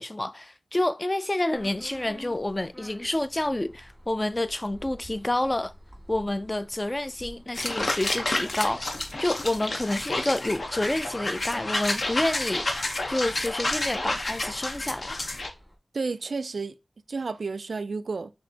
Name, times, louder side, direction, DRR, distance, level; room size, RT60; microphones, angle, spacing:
voice 1, 0.0-5.7 6.1-8.8 9.2-12.7 13.1-15.2, left 1 dB, 25° left, 0.3 m, -28 dB
sound 1, 1.5-15.8, equal, 10° left, 1.8 m, -51 dB
sound 2, 7.5-15.5, left 2 dB, 60° left, 0.8 m, -30 dB
voice 2, 15.9-16.7 17.1-18.3, right 4 dB, 70° right, 0.3 m, -31 dB
6.3 x 2.7 x 2.7 m
cardioid pair, 55°, 0 cm